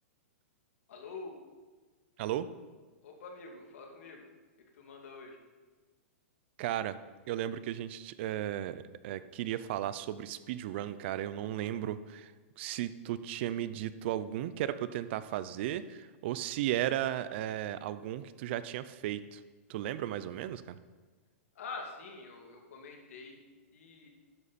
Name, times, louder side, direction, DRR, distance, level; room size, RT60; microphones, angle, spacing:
voice 1, 0.9-1.4 3.0-4.3 4.8-5.4 21.6-23.4 23.7-24.1, left 4 dB, 70° left, 1 dB, 2.6 m, -46 dB
voice 2, 6.6-7.0 7.3-12.3 12.6-19.4 19.7-20.8, right 12 dB, 50° right, 14 dB, 0.6 m, -35 dB
12.5 x 9.8 x 4.3 m, 1.4 s
hypercardioid pair, 140°, 8 cm